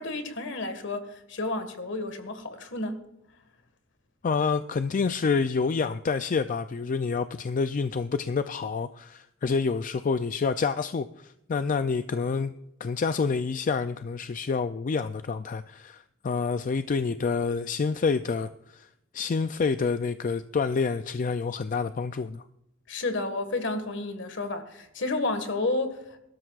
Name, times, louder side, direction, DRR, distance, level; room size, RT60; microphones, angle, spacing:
voice 1, 0.0-3.0 22.9-26.0, left 2 dB, 60° left, 8 dB, 1.7 m, -31 dB
voice 2, 4.2-12.5 12.8-18.9 19.1-22.4, left 5 dB, 40° left, 11 dB, 0.4 m, -28 dB
22.0 x 12.5 x 2.4 m, 0.84 s
head